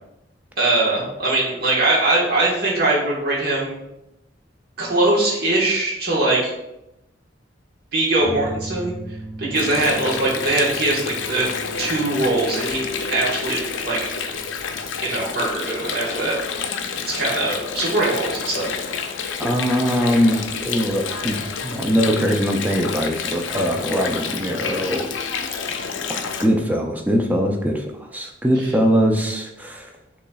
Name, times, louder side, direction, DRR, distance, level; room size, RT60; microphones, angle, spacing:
voice 1, 0.6-3.8 4.8-6.5 7.9-8.9 9.4-11.5 11.8-14.0 15.0-16.4 17.0-18.7 28.6-28.7, right 2 dB, 55° right, -5 dB, 1.4 m, -21 dB
sound 1, 8.2-15.1, right 1 dB, 35° right, 1.4 m, -38 dB
Water, 9.5-26.5, left 6 dB, 85° left, 0.4 m, -29 dB
voice 2, 19.4-25.1 26.0-29.9, equal, 10° right, 2 dB, 0.4 m, -22 dB
6.6 x 3.1 x 2.3 m, 0.89 s
head